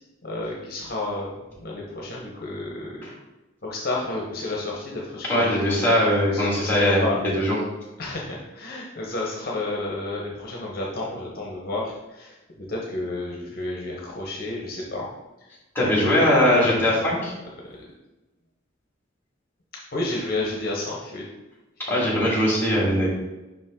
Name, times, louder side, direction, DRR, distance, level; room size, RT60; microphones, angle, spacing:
voice 1, 0.2-1.3 1.6-3.1 3.6-5.9 6.3-7.2 8.0-15.1 15.4-15.5 15.9-17.1 17.6-17.8 19.9-21.3, left 2 dB, 50° left, -2 dB, 1.0 m, -31 dB
voice 2, 5.3-7.0 7.3-7.5 15.7-17.3 21.8-23.1, left 1 dB, 10° left, -6 dB, 2.2 m, -20 dB
5.7 x 5.2 x 3.7 m, 1.0 s
head